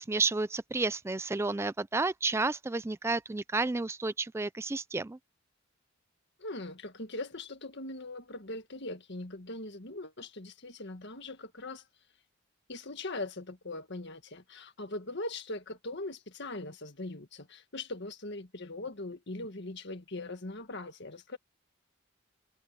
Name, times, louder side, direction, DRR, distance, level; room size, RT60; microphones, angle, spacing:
voice 1, 0.0-5.2, right 3 dB, 15° right, 0.3 m, -31 dB
voice 2, 6.4-11.8 12.7-21.4, left 2 dB, 60° left, 1.9 m, -40 dB
head